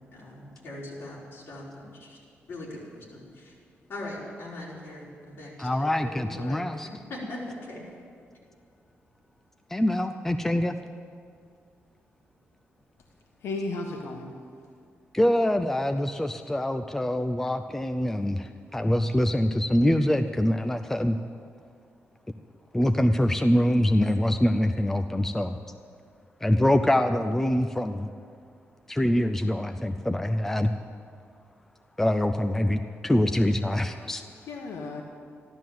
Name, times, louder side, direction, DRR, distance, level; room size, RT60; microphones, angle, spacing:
voice 1, 0.1-2.2 2.5-3.5 3.9-6.6 7.1-7.8, left 1 dB, 50° left, -5 dB, 4.9 m, -40 dB
voice 2, 5.6-6.9 9.7-10.7 15.1-21.2 22.7-25.6 26.4-28.1 28.9-30.7 32.0-34.2, left 1 dB, 5° left, 7 dB, 0.4 m, -24 dB
voice 3, 13.4-14.3 34.2-35.0, left 3 dB, 85° left, 1 dB, 1.3 m, -34 dB
14.5 x 12.5 x 7.7 m, 2.2 s
wide cardioid pair, 165°, 5 cm